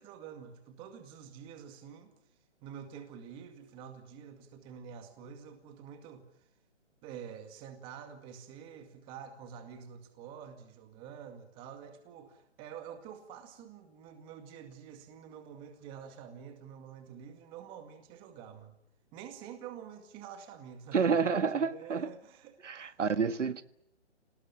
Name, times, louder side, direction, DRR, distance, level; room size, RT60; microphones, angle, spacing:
voice 1, 0.0-2.1 2.6-6.3 7.0-18.7 19.1-23.0, right 8 dB, 15° right, 2.1 m, -48 dB
voice 2, 20.9-22.1 22.6-23.6, right 5 dB, 80° right, 1.7 m, -29 dB
27.5 x 19.0 x 9.0 m
hypercardioid pair, 165°, 36 cm